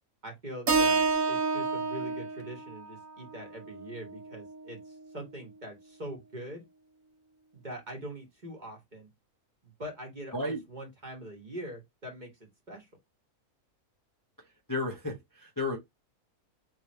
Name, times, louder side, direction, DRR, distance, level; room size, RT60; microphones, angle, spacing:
voice 1, 0.2-6.7 7.5-9.1 9.6-12.9, right 1 dB, 35° right, 1.4 m, -43 dB
Keyboard (musical), 0.7-4.9, right 4 dB, 75° right, 1.6 m, -30 dB
voice 2, 14.7-15.8, left 2 dB, 15° left, 1.0 m, -32 dB
3.4 x 3.1 x 4.4 m
omnidirectional pair, 1.5 m